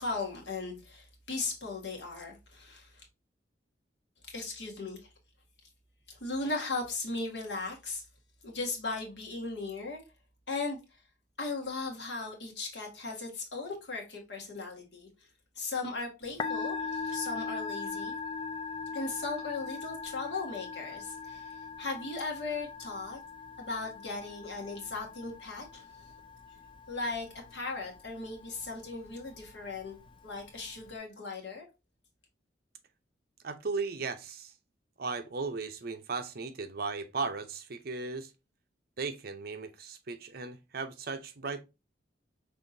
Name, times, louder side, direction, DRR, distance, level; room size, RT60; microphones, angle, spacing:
voice 1, 0.0-3.1 4.3-5.0 6.1-8.0 8.4-10.0 10.5-11.0 11.4-15.1 15.5-18.2 18.9-23.2 23.6-26.1 26.9-30.0 30.2-31.7, left 3 dB, 70° left, 1.7 m, -37 dB
Musical instrument, 16.2-31.0, left 5 dB, 30° left, 0.4 m, -41 dB
voice 2, 33.4-34.5 35.0-38.3 39.0-41.6, right 4 dB, 55° right, 0.7 m, -36 dB
5.5 x 3.4 x 2.7 m
head